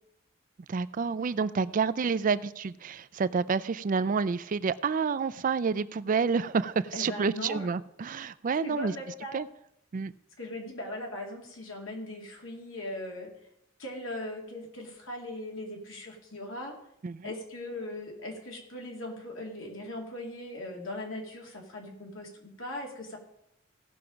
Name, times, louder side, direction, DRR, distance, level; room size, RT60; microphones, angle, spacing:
voice 1, 0.7-8.9 9.3-9.5 9.9-10.1 17.0-17.3, right 5 dB, 40° right, 15 dB, 0.4 m, -29 dB
voice 2, 6.9-7.7 8.6-9.4 10.4-13.3 13.8-16.8 17.2-23.2, left 1 dB, 75° left, 0 dB, 2.5 m, -39 dB
16.5 x 5.8 x 5.1 m, 0.79 s
head